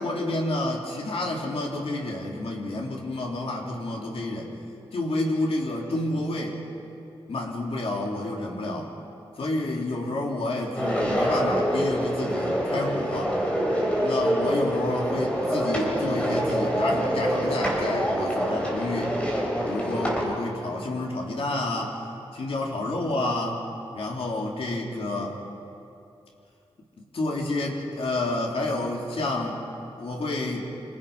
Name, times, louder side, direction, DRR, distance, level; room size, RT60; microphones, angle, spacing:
voice 1, 0.0-4.5 4.9-6.6 7.3-8.9 9.4-13.3 14.0-19.2 19.6-22.0 22.4-23.6 23.9-25.4 27.0-29.6 30.0-30.7, left 2 dB, 65° left, -1 dB, 3.4 m, -29 dB
sound 1, 10.7-20.2, equal, 10° left, 4.3 m, -26 dB
26.5 x 26.0 x 5.6 m, 2.7 s
wide cardioid pair, 165°, 11 cm